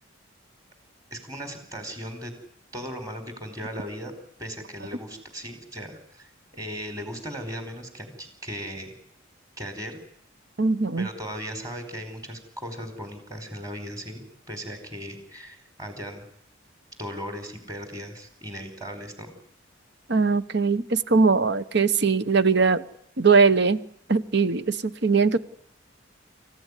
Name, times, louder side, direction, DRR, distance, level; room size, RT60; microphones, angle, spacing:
voice 1, 1.1-2.3 2.7-4.1 4.4-8.9 9.6-10.0 11.0-16.2 17.0-19.3, equal, 20° right, 7 dB, 4.6 m, -37 dB
voice 2, 10.6-11.1 20.1-22.8 23.2-23.8 24.1-25.4, right 4 dB, 60° right, 14 dB, 1.0 m, -21 dB
26.5 x 15.5 x 9.8 m, 0.76 s
head